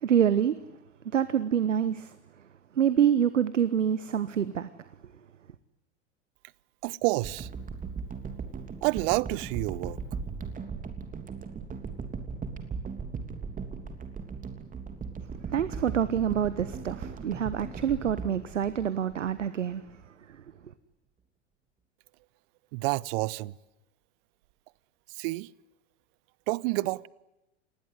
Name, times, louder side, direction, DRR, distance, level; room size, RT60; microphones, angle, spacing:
voice 1, 0.0-0.6 1.1-2.1 2.8-4.7 15.5-19.8, right 9 dB, 85° right, 1.1 m, -26 dB
voice 2, 6.8-7.5 8.8-10.0 22.7-23.5 25.1-25.5 26.5-27.1, right 23 dB, 50° right, 0.8 m, -29 dB
sound 1, 7.2-19.5 20.0-20.1, right 5 dB, 20° right, 3.2 m, -38 dB
28.0 x 20.0 x 9.6 m
hypercardioid pair, 95°, 36 cm